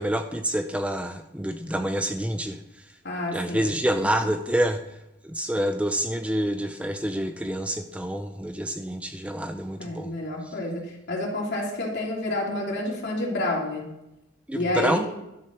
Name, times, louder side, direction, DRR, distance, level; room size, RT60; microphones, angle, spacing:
voice 1, 0.0-2.6 3.3-4.8 5.2-10.1 10.4-10.5 14.5-15.0, right 1 dB, 5° right, 7 dB, 0.5 m, -27 dB
voice 2, 3.0-4.3 9.8-13.9 14.5-15.0, left 1 dB, 55° left, -2 dB, 3.0 m, -29 dB
12.0 x 7.5 x 6.1 m, 0.91 s
head